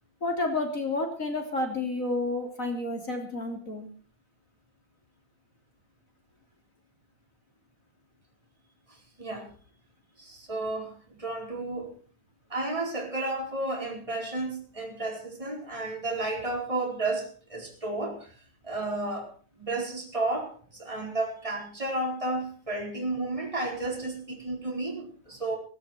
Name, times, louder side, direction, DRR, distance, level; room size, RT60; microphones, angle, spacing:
voice 1, 0.2-3.9, left 2 dB, 40° left, 4 dB, 3.7 m, -30 dB
voice 2, 8.9-9.5 10.2-11.9 12.5-18.3 18.6-19.3 19.6-20.5 20.8-25.6, right 2 dB, 15° right, 1 dB, 4.6 m, -32 dB
16.5 x 16.5 x 4.5 m, 0.40 s
omnidirectional pair, 2.1 m